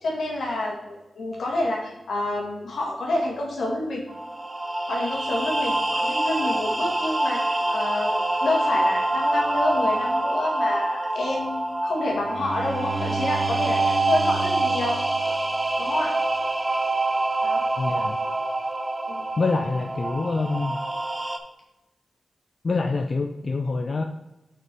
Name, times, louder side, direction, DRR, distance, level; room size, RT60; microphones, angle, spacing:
voice 1, 0.0-4.0 4.9-15.0 15.8-16.2 17.4-17.6 19.1-19.3, left 2 dB, 85° left, -1 dB, 2.2 m, -28 dB
sound 1, 4.1-21.4, right 2 dB, 25° right, 0.8 m, -26 dB
Bowed string instrument, 12.2-16.0, right 5 dB, 65° right, 1.4 m, -34 dB
voice 2, 17.8-18.2 19.4-20.8 22.6-24.0, left 3 dB, 50° left, 5 dB, 0.5 m, -26 dB
6.0 x 5.9 x 4.5 m, 0.98 s
cardioid pair, 80°, 0 cm